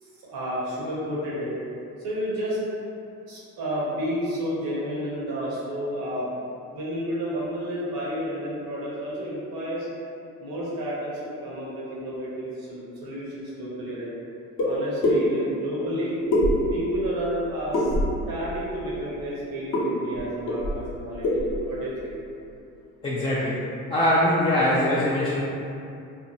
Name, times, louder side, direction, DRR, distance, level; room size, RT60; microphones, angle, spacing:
voice 1, 0.0-1.5 2.0-2.6 3.3-6.3 6.7-9.9 10.4-14.1 14.6-16.2 16.7-17.9 18.3-22.2, equal, 70° right, -7 dB, 0.9 m, -31 dB
sound 1, 14.6-14.7 15.0-15.2 16.3-16.9 17.7-18.2 19.7-19.9 20.1-20.2 20.5-20.9 21.2-21.6, left 1 dB, 50° left, 0.8 m, -22 dB
voice 2, 23.0-23.6 23.9-25.4, left 1 dB, 15° left, -8 dB, 0.3 m, -22 dB
2.7 x 2.1 x 2.7 m, 2.6 s
supercardioid pair, 75°, 38 cm